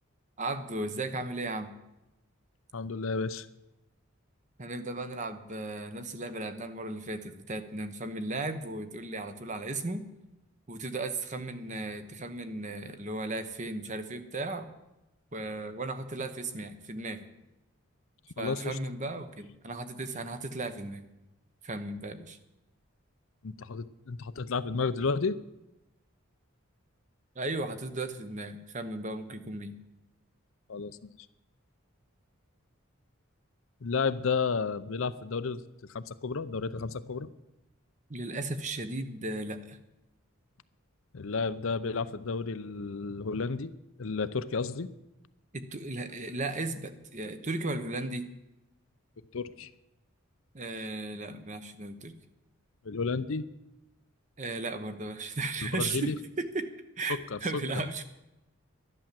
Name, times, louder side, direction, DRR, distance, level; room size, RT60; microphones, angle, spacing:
voice 1, 0.4-1.7 4.6-10.0 10.7-14.7 15.3-17.2 18.4-21.0 21.6-22.4 27.4-29.7 38.1-39.8 45.5-48.3 50.5-52.1 54.4-56.7 57.0-58.0, right 2 dB, 35° right, 10 dB, 1.0 m, -35 dB
voice 2, 2.7-3.5 18.4-18.8 23.4-25.4 30.7-31.1 33.8-35.6 35.9-37.3 41.1-43.7 44.0-44.9 49.3-49.7 52.8-53.5 55.7-56.1 57.1-57.4, left 4 dB, 65° left, 14 dB, 0.6 m, -32 dB
11.5 x 11.5 x 7.5 m, 0.95 s
head